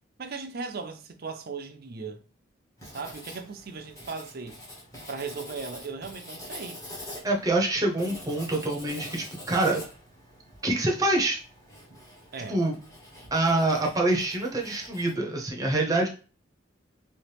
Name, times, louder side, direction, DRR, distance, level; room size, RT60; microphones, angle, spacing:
voice 1, 0.2-2.2 2.9-4.6 5.1-6.8 12.3-12.6, right 4 dB, 50° right, 0.5 m, -37 dB
Writing, 2.8-15.2, left 1 dB, 15° left, 1.0 m, -45 dB
voice 2, 7.2-9.8 10.6-11.4 12.5-12.8 13.3-16.1, right 2 dB, 20° right, 0.8 m, -25 dB
3.1 x 3.0 x 3.3 m
head